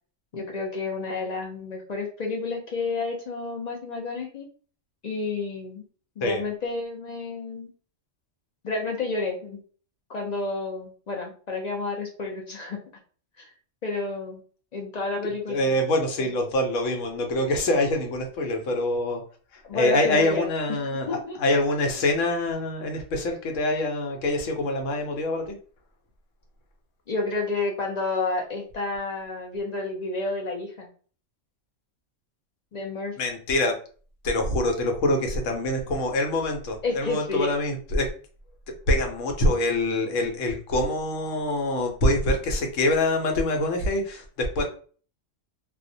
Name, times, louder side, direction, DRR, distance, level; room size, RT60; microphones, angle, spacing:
voice 1, 0.3-4.5 5.0-5.8 6.2-7.7 8.6-9.6 10.1-12.8 13.4-13.5 13.8-14.4 14.7-15.8 16.2-16.3 19.7-20.4 20.7-21.4 27.1-30.9 32.7-33.1 36.8-37.5 44.6-44.7, left 3 dB, 55° left, 0 dB, 0.4 m, -30 dB
voice 2, 15.5-19.2 19.5-25.5 33.2-33.8 34.2-38.1 38.7-44.6, left 1 dB, 80° left, 3 dB, 1.0 m, -25 dB
2.4 x 2.1 x 2.6 m, 0.41 s
omnidirectional pair, 1.3 m